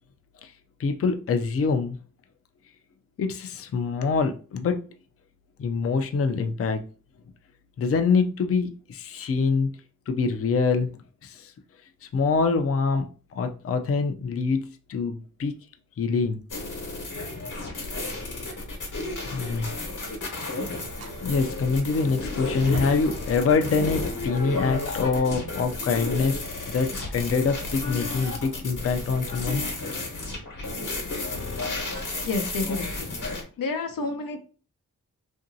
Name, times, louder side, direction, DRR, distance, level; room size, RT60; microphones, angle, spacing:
voice 1, 0.8-2.0 3.2-4.8 5.6-6.8 7.8-9.7 10.1-11.5 12.0-15.5 16.0-16.4 19.3-19.7 21.2-29.6, left 4 dB, 45° left, 6 dB, 0.4 m, -25 dB
sound 1, 16.5-33.4, left 2 dB, 65° left, 1.0 m, -32 dB
Fire, 20.9-29.9, right 2 dB, 50° right, 0.7 m, -45 dB
voice 2, 32.2-33.2 33.6-34.4, left 3 dB, 85° left, 5 dB, 0.6 m, -30 dB
2.8 x 2.6 x 2.6 m, 0.36 s
cardioid pair, 55°, 33 cm